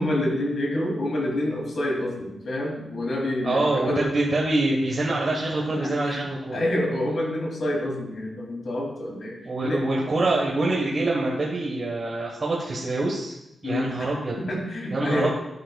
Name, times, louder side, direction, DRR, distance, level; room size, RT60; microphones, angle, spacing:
voice 1, 0.0-4.1 5.8-6.2 6.5-9.3 9.6-9.8 13.6-15.3, left 1 dB, 60° left, -1 dB, 2.6 m, -27 dB
voice 2, 3.4-6.6 9.4-13.3 13.6-14.3 14.9-15.3, right 2 dB, 40° right, -3 dB, 1.3 m, -25 dB
11.5 x 7.7 x 2.3 m, 0.89 s
wide cardioid pair, 120°, 0 cm